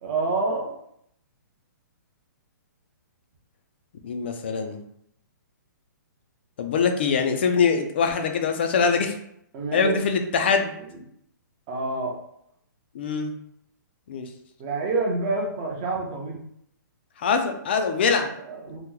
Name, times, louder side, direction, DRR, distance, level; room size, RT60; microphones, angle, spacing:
voice 1, 0.0-0.8 9.5-10.0 11.7-12.1 14.6-16.4 18.1-18.2 18.5-18.8, right 3 dB, 20° right, -1 dB, 0.5 m, -27 dB
voice 2, 4.0-4.8 6.6-9.1 9.7-10.8 12.9-13.3 14.1-14.3 17.2-18.3, left 5 dB, 35° left, 5 dB, 0.4 m, -23 dB
2.9 x 2.1 x 3.6 m, 0.72 s
hypercardioid pair, 170°, 10 cm